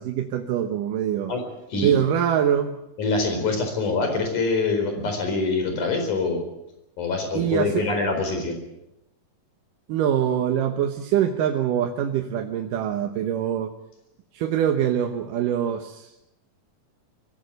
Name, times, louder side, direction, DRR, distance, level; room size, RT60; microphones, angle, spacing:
voice 1, 0.0-1.3 1.8-2.8 7.3-7.9 9.9-13.7 14.3-16.1, right 9 dB, 85° right, 4 dB, 2.8 m, -24 dB
voice 2, 3.0-6.4 7.0-8.6, left 3 dB, 70° left, 5 dB, 5.9 m, -25 dB
23.5 x 16.0 x 8.1 m, 0.89 s
omnidirectional pair, 3.7 m